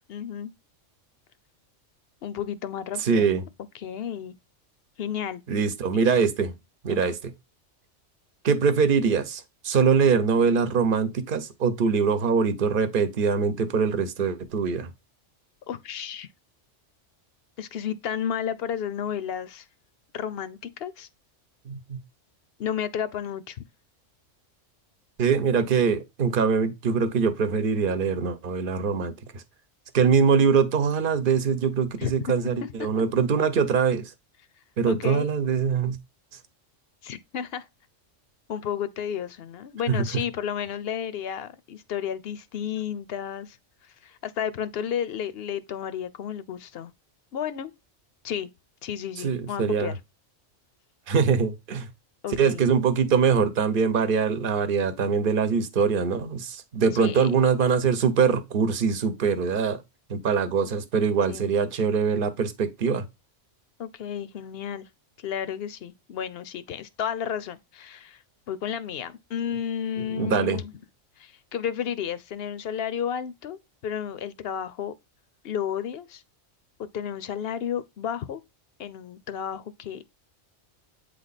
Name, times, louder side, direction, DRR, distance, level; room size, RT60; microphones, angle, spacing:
voice 1, 0.1-0.5 2.2-3.3 3.7-4.4 5.0-5.4 5.9-6.1 6.9-7.1 15.7-16.3 17.6-19.7 20.1-21.1 22.6-23.6 32.0-32.1 32.6-32.9 34.9-35.3 37.0-37.7 38.5-43.6 43.8-46.9 47.3-47.7 48.2-48.5 48.8-50.0 52.2-52.6 56.9-57.3 61.3-61.5 63.8-64.9 65.2-70.7 71.2-74.9 75.4-76.2 76.9-78.4 78.8-80.0, left 8 dB, 60° left, 0.8 m, -32 dB
voice 2, 3.0-3.4 5.5-6.5 6.8-7.2 8.4-14.9 21.7-22.0 25.2-29.4 29.9-34.0 34.8-36.0 39.9-40.0 49.2-49.9 51.1-51.9 52.4-59.8 60.1-63.0 70.1-70.6, right 6 dB, 50° right, 1.0 m, -23 dB
8.3 x 3.4 x 4.0 m
omnidirectional pair, 1.3 m